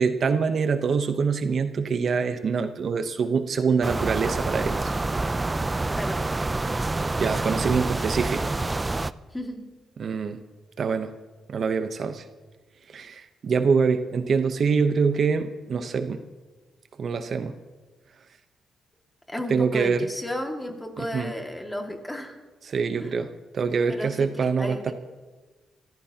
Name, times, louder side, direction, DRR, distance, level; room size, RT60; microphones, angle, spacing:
voice 1, 0.0-4.9 7.2-8.6 10.0-10.4 10.8-11.1 11.5-12.2 12.9-16.2 17.0-17.6 19.5-20.1 21.0-21.3 22.6-24.9, right 5 dB, 55° right, 9 dB, 0.8 m, -25 dB
sound 1, 3.8-9.1, right 2 dB, 20° right, 0.4 m, -27 dB
voice 2, 9.3-9.7 19.3-22.4 23.0-23.2 23.9-24.9, left 1 dB, 10° left, 3 dB, 2.0 m, -33 dB
24.5 x 14.5 x 2.9 m, 1.2 s
cardioid pair, 85°, 0 cm